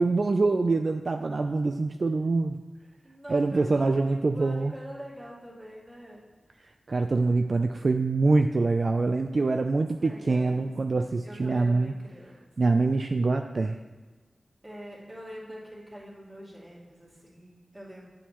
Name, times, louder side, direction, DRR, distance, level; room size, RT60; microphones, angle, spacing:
voice 1, 0.0-2.6 3.3-4.7 6.9-11.9 12.6-13.8, right 3 dB, 55° right, 6 dB, 0.3 m, -25 dB
voice 2, 1.4-1.9 3.0-6.2 9.3-12.4 14.6-18.1, equal, 20° right, -6 dB, 2.4 m, -45 dB
8.7 x 7.1 x 3.0 m, 1.3 s
wide cardioid pair, 70°, 0 cm